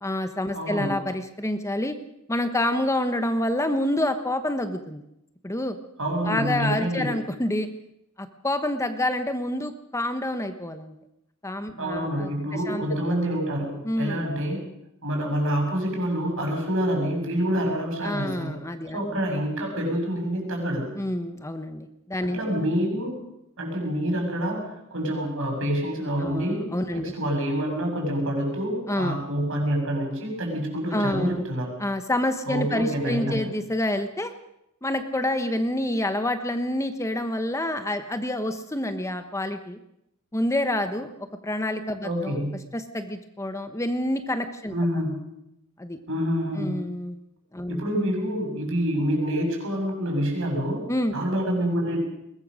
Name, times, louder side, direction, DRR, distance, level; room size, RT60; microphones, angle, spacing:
voice 1, 0.0-2.0 2.3-5.0 5.4-5.8 6.3-7.7 8.2-10.9 11.4-12.8 13.8-14.3 18.0-19.2 20.9-22.4 26.2-27.1 28.9-29.2 30.9-31.4 31.8-34.3 34.8-39.8 40.3-41.1 41.4-42.5 42.7-44.7 45.8-46.0 46.6-47.2 47.5-47.9 50.9-51.1, left 1 dB, 15° left, 8 dB, 1.1 m, -28 dB
voice 2, 0.5-0.9 6.0-7.1 11.8-14.6 15.0-18.6 18.9-20.9 22.3-23.1 23.6-26.6 26.9-31.7 32.5-33.5 42.0-42.5 44.7-45.2 46.1-46.8 47.7-50.8 51.1-52.0, equal, 65° right, 1 dB, 7.1 m, -27 dB
21.5 x 19.5 x 6.4 m, 0.82 s
head